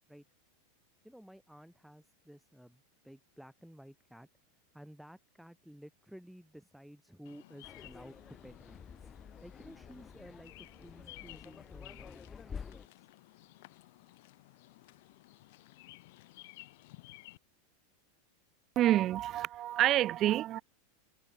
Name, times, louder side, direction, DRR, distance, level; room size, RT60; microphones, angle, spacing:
voice 1, 1.0-4.3 4.7-8.8 9.4-13.1, equal, ahead, 6.3 m, -54 dB
Bird vocalization bird call bird song, 7.3-17.4, left 20 dB, 60° left, 3.0 m, -56 dB
sound 1, 7.6-12.9, left 6 dB, 20° left, 7.6 m, -49 dB
voice 2, 18.7-20.6, right 13 dB, 40° right, 1.5 m, -28 dB
hypercardioid pair, 95°, 0 cm